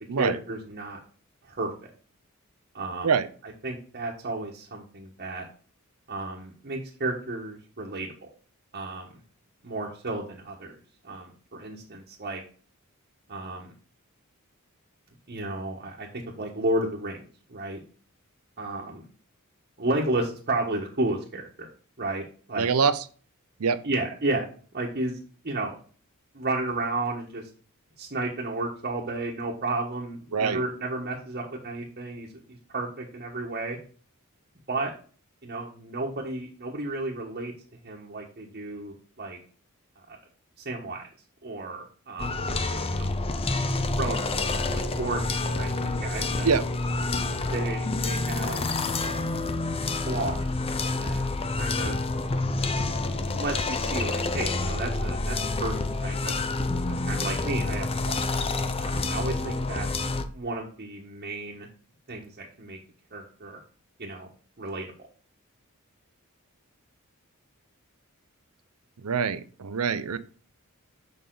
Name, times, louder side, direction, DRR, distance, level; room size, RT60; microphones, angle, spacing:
voice 1, 0.2-1.0 1.4-1.7 2.7-3.1 3.6-5.5 6.1-8.3 8.7-9.1 9.6-10.8 11.0-12.4 13.3-13.7 15.3-17.2 17.5-17.8 18.6-19.0 19.8-21.7 22.0-22.7 23.8-24.5 24.7-25.2 25.4-25.7 26.3-27.5 28.0-33.8 34.7-34.9 35.4-37.5 37.8-39.4 40.1-40.2 40.6-41.1 41.4-42.3 42.9-43.1 44.0-46.5 47.5-48.6 48.9-49.3 50.0-50.5 51.0-51.3 51.5-52.0 53.3-56.3 57.1-58.2 58.8-60.0 60.3-61.7 62.1-62.8 63.1-63.6 64.0-64.3 64.6-64.9, right 2 dB, 45° right, -3 dB, 1.3 m, -32 dB
voice 2, 22.6-23.0 23.6-23.8 30.3-30.6 46.4-46.6 69.0-70.2, right 5 dB, 80° right, 13 dB, 0.6 m, -24 dB
sound 1, 42.2-60.2, left 2 dB, 25° left, 0.6 m, -28 dB
6.7 x 5.4 x 3.9 m, 0.41 s
head